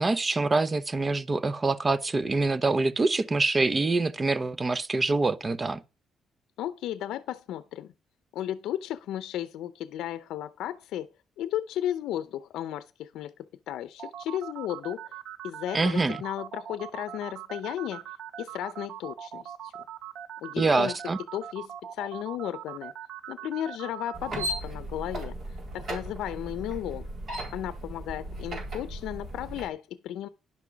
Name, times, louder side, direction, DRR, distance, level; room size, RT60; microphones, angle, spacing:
voice 1, 0.0-5.8 15.7-16.2 20.6-21.2, right 3 dB, 30° right, 0.8 m, -25 dB
voice 2, 6.6-7.9 8.3-11.1 11.4-13.3 13.7-15.1 15.4-18.0 18.4-19.7 20.4-20.9 21.3-22.9 23.3-25.4 25.7-27.1 27.5-30.3, left 12 dB, 85° left, 0.6 m, -34 dB
sound 1, 14.0-24.6, right 10 dB, 75° right, 0.9 m, -41 dB
sound 2, 24.1-29.7, right 1 dB, 50° right, 4.2 m, -36 dB
11.0 x 6.1 x 5.8 m
cardioid pair, 90°, 0 cm